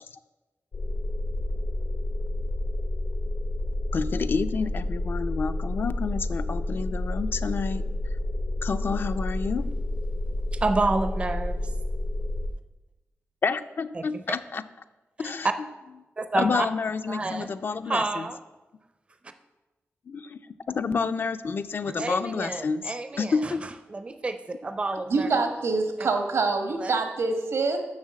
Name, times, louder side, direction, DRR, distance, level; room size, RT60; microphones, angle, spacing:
sound 1, 0.7-12.5, left 1 dB, 70° left, 0.8 m, -30 dB
voice 1, 3.9-7.8 8.6-9.6 13.4-14.7 15.2-15.5 16.3-18.3 20.1-20.4 20.7-23.6, left 5 dB, 50° left, 11 dB, 0.4 m, -29 dB
voice 2, 10.5-11.6 13.9-14.0 15.2-15.3 16.2-16.7 17.1-17.5 17.9-18.4 21.9-23.5 23.9-25.4 26.0-26.1 26.8-26.9, right 3 dB, 25° right, 9 dB, 0.5 m, -29 dB
voice 3, 25.1-27.8, right 3 dB, 85° right, 5 dB, 1.4 m, -25 dB
7.4 x 6.4 x 7.4 m, 1.1 s
wide cardioid pair, 170°, 5 cm